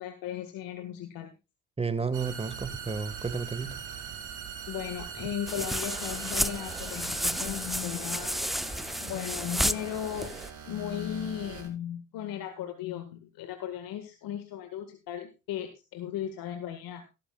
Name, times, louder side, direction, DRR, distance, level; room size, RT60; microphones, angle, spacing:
voice 1, 0.0-1.3 4.7-8.4 9.0-10.3 10.6-17.1, left 10 dB, 70° left, 1.9 m, -36 dB
voice 2, 1.8-3.8, right 5 dB, 15° right, 1.8 m, -32 dB
sound 1, 2.1-11.7, right 7 dB, 55° right, 5.1 m, -42 dB
sound 2, 5.5-10.5, equal, ahead, 0.6 m, -32 dB
14.5 x 13.0 x 2.4 m
supercardioid pair, 75°, 36 cm